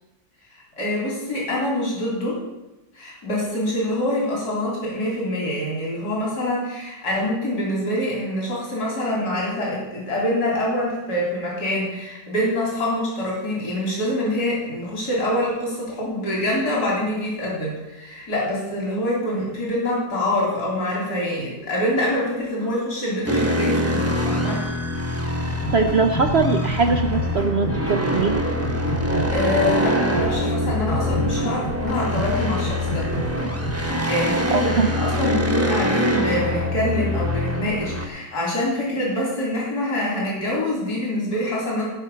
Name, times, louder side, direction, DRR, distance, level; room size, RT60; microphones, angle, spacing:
voice 1, 0.8-2.4 3.0-24.6 29.3-33.1 34.0-41.9, left 1 dB, 60° left, -4 dB, 4.1 m, -25 dB
sound 1, 23.3-38.1, left 1 dB, 10° right, 0.8 m, -24 dB
sound 2, 25.5-26.4 26.6-28.4 28.6-30.4 30.6-32.4 32.6-34.1, right 1 dB, 75° left, 3.4 m, -31 dB
voice 2, 25.7-28.4 34.5-34.9, right 4 dB, 65° right, 6 dB, 0.6 m, -21 dB
17.5 x 6.0 x 5.6 m, 1.0 s
omnidirectional pair, 1.9 m